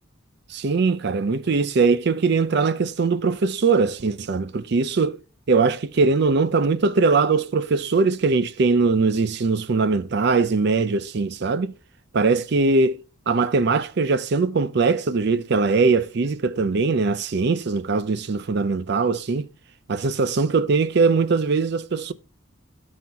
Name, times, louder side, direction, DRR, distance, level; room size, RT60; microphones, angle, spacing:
voice 1, 0.5-5.2 5.5-11.8 12.1-19.5 19.9-22.1, right 4 dB, 55° right, 0.5 m, -21 dB
12.0 x 4.3 x 3.7 m
head